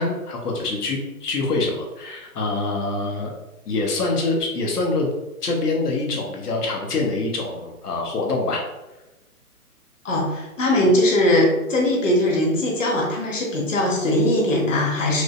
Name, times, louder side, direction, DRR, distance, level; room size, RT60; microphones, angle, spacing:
voice 1, 0.0-3.3 3.6-5.1 5.4-8.6, left 3 dB, 90° left, 0 dB, 1.1 m, -25 dB
voice 2, 10.0-15.2, left 1 dB, 55° left, -2 dB, 1.1 m, -20 dB
4.9 x 2.1 x 2.5 m, 1.0 s
hypercardioid pair, 175°, 45 cm